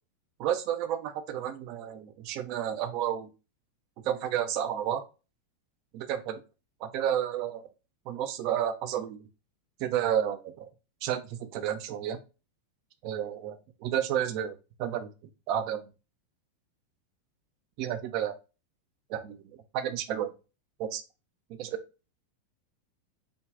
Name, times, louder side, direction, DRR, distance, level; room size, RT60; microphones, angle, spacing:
voice 1, 0.4-3.3 4.0-5.0 5.9-6.4 6.8-7.7 8.1-9.3 9.8-10.7 11.0-12.2 13.0-13.6 13.8-15.1 15.5-15.9 17.8-18.3 19.1-19.4 19.7-20.3 20.8-21.0 21.6-21.7, right 10 dB, 45° right, 0.5 m, -31 dB
5.1 x 2.3 x 3.6 m
figure-of-eight pair, 90°, 0 cm